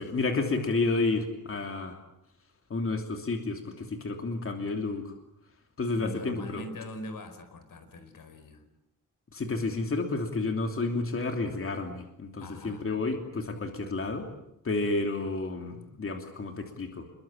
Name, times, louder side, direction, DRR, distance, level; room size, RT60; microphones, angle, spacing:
voice 1, 0.0-2.0 2.7-5.2 5.8-6.6 9.3-14.3 14.6-17.1, left 3 dB, 40° left, 4 dB, 3.0 m, -31 dB
voice 2, 5.9-8.6 12.4-12.9, left 1 dB, 80° left, 10 dB, 4.7 m, -42 dB
29.5 x 22.0 x 9.1 m, 0.83 s
wide cardioid pair, 155°, 33 cm